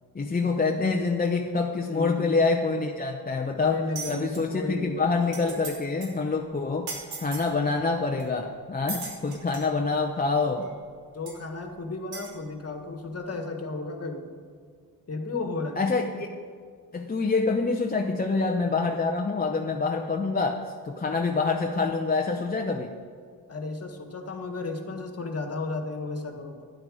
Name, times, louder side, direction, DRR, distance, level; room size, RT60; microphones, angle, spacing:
voice 1, 0.1-3.8 4.1-6.9 7.2-10.7 15.8-16.4 16.9-22.9, left 4 dB, 25° left, 1 dB, 0.7 m, -26 dB
voice 2, 1.9-2.3 3.6-5.3 11.1-14.2 15.1-15.8 23.5-26.7, left 3 dB, 40° left, 5 dB, 1.6 m, -34 dB
sound 1, 4.0-4.4 4.9-5.0 5.2-5.7 6.0-6.2 6.9-7.5 8.2-8.3 8.9-9.7 10.6-10.7 11.3-11.4 12.1-12.3, right 3 dB, 80° right, 3.1 m, -37 dB
12.5 x 10.5 x 4.9 m, 2.1 s
cardioid pair, 105°, 37 cm